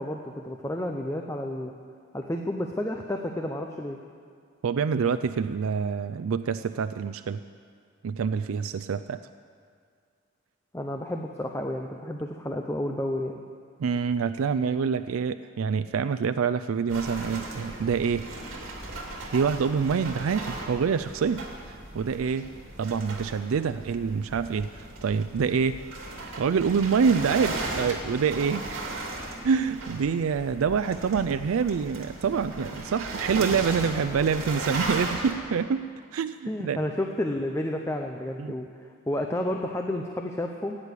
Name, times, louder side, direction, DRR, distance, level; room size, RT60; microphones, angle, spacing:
voice 1, 0.0-1.7 2.1-4.0 10.7-13.4 36.5-40.8, left 1 dB, 15° left, 3 dB, 0.6 m, -31 dB
voice 2, 4.6-7.4 8.0-9.2 13.8-18.3 19.3-22.5 22.8-25.8 26.4-28.9 29.4-35.9 36.1-36.8 38.4-38.6, right 6 dB, 85° right, 12 dB, 0.4 m, -26 dB
sound 1, 16.9-35.3, right 2 dB, 65° right, 2.6 m, -37 dB
15.5 x 9.9 x 8.3 m, 2.2 s
head